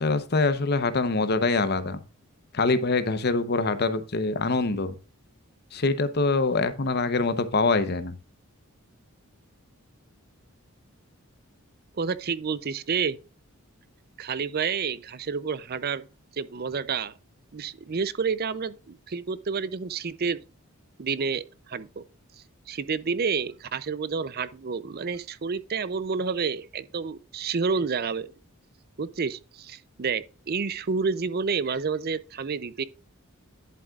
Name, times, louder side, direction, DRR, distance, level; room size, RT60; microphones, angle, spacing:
voice 1, 0.0-2.0 2.5-5.0 5.7-8.2, left 3 dB, 45° left, 0.9 m, -24 dB
voice 2, 11.9-13.2 14.2-16.1 16.3-17.1 17.5-20.4 21.0-22.0 22.7-28.3 29.0-32.8, right 5 dB, 45° right, 0.5 m, -29 dB
11.0 x 7.6 x 2.4 m
head